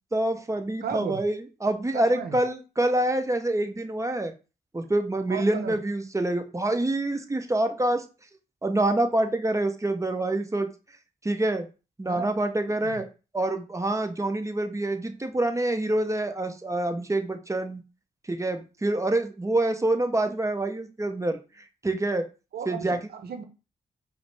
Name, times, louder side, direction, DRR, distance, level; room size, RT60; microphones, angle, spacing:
voice 1, 0.1-4.3 4.7-8.0 8.6-10.7 11.2-11.7 12.0-13.1 13.3-17.8 18.3-21.4 21.8-22.3 22.7-23.0, right 1 dB, 20° right, 7 dB, 0.7 m, -26 dB
voice 2, 0.8-1.2 1.9-2.4 5.3-5.8 12.1-12.3 12.7-13.0 22.5-23.4, right 6 dB, 75° right, 7 dB, 0.7 m, -34 dB
4.9 x 2.1 x 3.2 m, 0.31 s
cardioid pair, 55°, 16 cm